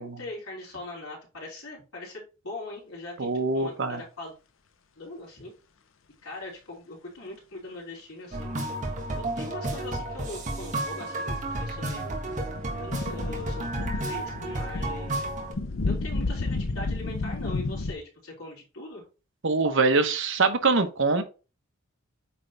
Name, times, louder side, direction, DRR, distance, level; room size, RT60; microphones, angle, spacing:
voice 1, 0.0-4.3 5.0-5.5 6.2-8.5 9.1-12.1 12.7-15.3 15.8-19.0, left 2 dB, 90° left, 3.3 m, -41 dB
voice 2, 3.2-4.0 19.4-21.2, right 3 dB, 60° right, 0.9 m, -24 dB
sound 1, 8.3-15.5, right 1 dB, 35° right, 1.6 m, -32 dB
sound 2, 11.4-17.9, left 3 dB, 65° left, 0.7 m, -32 dB
8.7 x 3.3 x 3.9 m
head